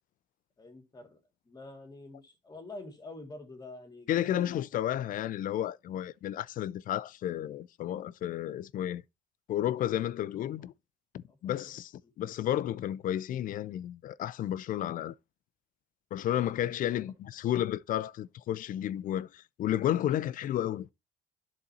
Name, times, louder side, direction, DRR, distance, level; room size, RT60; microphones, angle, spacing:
voice 1, 0.6-1.2 1.5-4.6 10.4-10.6 11.3-11.7 12.0-12.1 17.0-17.1, left 2 dB, 25° left, 2.0 m, -47 dB
voice 2, 4.1-9.0 9.5-10.7 11.1-15.1 16.1-20.9, left 12 dB, 55° left, 0.4 m, -32 dB
10.5 x 4.2 x 4.1 m
cardioid pair, 110°, 17 cm